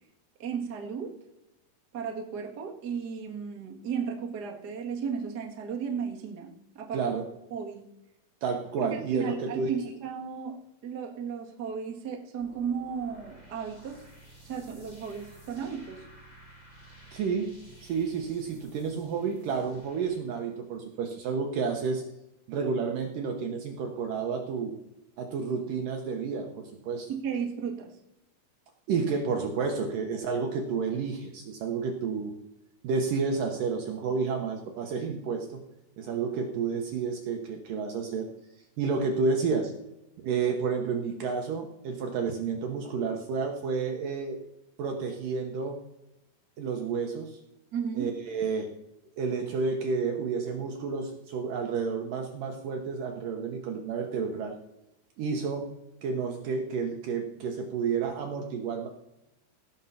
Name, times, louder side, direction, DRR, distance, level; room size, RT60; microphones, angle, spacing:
voice 1, 0.4-1.2 1.9-7.0 7.5-7.9 8.8-14.0 14.4-16.1 27.1-28.0 47.7-48.2, right 6 dB, 45° right, 0 dB, 1.3 m, -35 dB
voice 2, 6.9-7.3 8.4-9.7 17.1-17.5 17.8-22.0 22.5-24.7 25.2-27.1 28.9-32.3 32.8-35.6 36.0-38.3 38.8-39.7 40.2-44.4 44.8-45.8 46.6-47.4 48.0-48.7 49.2-54.6 55.2-55.7 56.0-58.9, right 5 dB, 65° right, 3 dB, 2.3 m, -30 dB
sound 1, 12.4-20.2, right 1 dB, 15° left, 1.4 m, -53 dB
17.5 x 7.2 x 5.8 m, 0.89 s
omnidirectional pair, 5.0 m